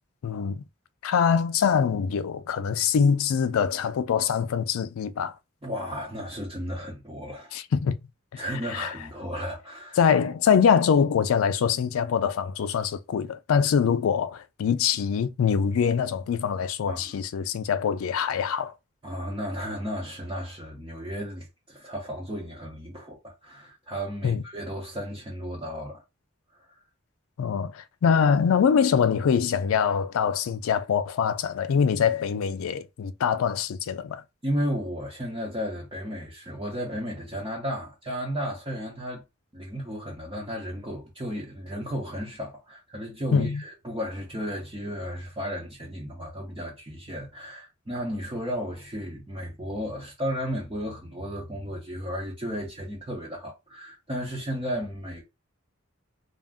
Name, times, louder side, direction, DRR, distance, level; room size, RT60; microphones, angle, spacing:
voice 1, 0.2-0.6 1.0-5.3 7.5-8.0 8.3-8.4 8.7-8.9 10.0-18.7 24.2-24.4 27.4-34.2 43.3-43.6, left 7 dB, 90° left, 0.4 m, -24 dB
voice 2, 5.6-7.5 8.4-10.0 16.8-17.1 19.0-26.0 26.6-26.7 34.4-39.2 39.5-55.2, equal, 20° right, 0.7 m, -34 dB
2.5 x 2.1 x 3.4 m
head